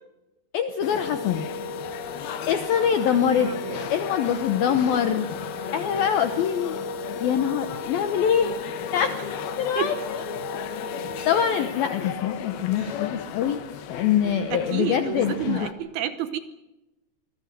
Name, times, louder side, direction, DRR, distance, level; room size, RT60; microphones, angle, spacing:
voice 1, 0.5-1.5 2.5-3.5 3.9-5.3 5.7-6.8 7.2-8.6 8.9-9.1 9.6-10.2 11.3-13.6 13.9-15.7, left 8 dB, 85° left, 9 dB, 2.0 m, -24 dB
sound 1, 0.8-15.7, left 6 dB, 65° left, 2.7 m, -33 dB
voice 2, 3.1-3.9 4.7-4.8 9.8-9.9 12.8-12.9 14.5-16.4, right 10 dB, 75° right, 11 dB, 2.3 m, -30 dB
26.0 x 22.5 x 6.8 m, 1.0 s
omnidirectional pair, 5.7 m